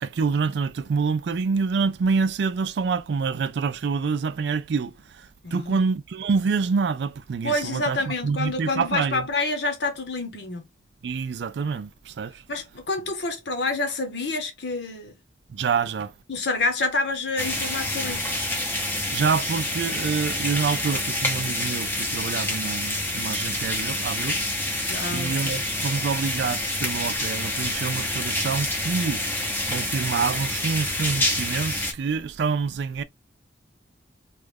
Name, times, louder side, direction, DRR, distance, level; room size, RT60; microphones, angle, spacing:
voice 1, 0.0-4.9 5.5-9.3 11.0-12.3 15.5-16.1 19.1-24.4 25.1-29.2 29.7-33.0, right 5 dB, 65° right, 0.4 m, -26 dB
voice 2, 5.4-5.8 7.4-10.7 12.5-15.2 16.3-18.3 24.8-25.5, left 3 dB, 70° left, 1.0 m, -28 dB
sound 1, 17.4-31.9, left 1 dB, 10° left, 0.7 m, -27 dB
3.2 x 2.4 x 3.3 m
head